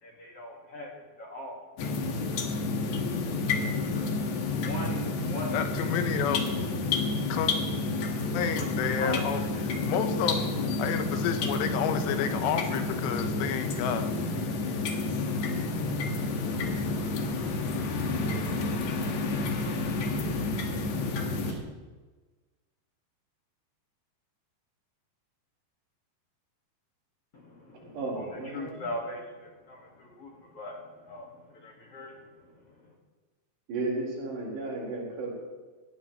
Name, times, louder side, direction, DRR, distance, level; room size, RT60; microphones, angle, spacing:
voice 1, 0.0-1.6 3.1-5.5 7.1-7.6 8.0-9.6 27.3-33.0, left 1 dB, 45° left, -2 dB, 2.1 m, -42 dB
sound 1, 1.8-21.5, left 3 dB, 65° left, 1.7 m, -30 dB
voice 2, 5.5-6.6 7.3-7.5 8.3-9.4 9.7-14.1, left 7 dB, 85° left, 7 dB, 3.3 m, -30 dB
Vehicle, 16.2-21.6, right 3 dB, 65° right, 3.8 m, -42 dB
voice 3, 27.7-28.9 33.7-35.3, right 3 dB, 80° right, -4 dB, 6.6 m, -34 dB
19.0 x 15.5 x 3.1 m, 1.3 s
omnidirectional pair, 4.9 m